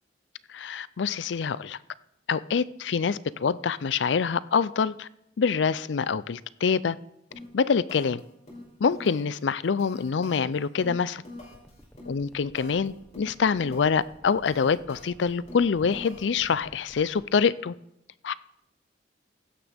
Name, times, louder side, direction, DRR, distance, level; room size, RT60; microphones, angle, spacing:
voice 1, 0.5-1.8 2.3-5.1 5.4-7.0 7.5-8.2 8.8-11.2 12.1-17.7 18.2-18.3, left 6 dB, 80° left, 0.5 m, -25 dB
sound 1, 7.3-7.6 7.9-8.2 8.5-9.4 9.6-12.9 13.1-14.0 14.3-16.5, left 1 dB, 40° left, 5.6 m, -45 dB
sound 2, 11.3-17.3, equal, 10° left, 1.1 m, -53 dB
15.5 x 12.5 x 3.5 m
head